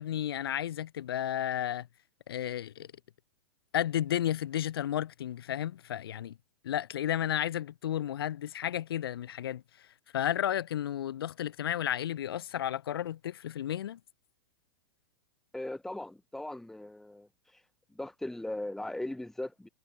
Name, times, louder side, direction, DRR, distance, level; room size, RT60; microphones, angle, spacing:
voice 1, 0.0-1.9 2.3-2.9 3.7-6.4 6.6-9.9 10.1-14.0, left 11 dB, 65° left, 0.6 m, -32 dB
voice 2, 15.5-17.3 17.9-19.7, left 1 dB, 5° left, 0.7 m, -38 dB
figure-of-eight pair, 100°, 13 cm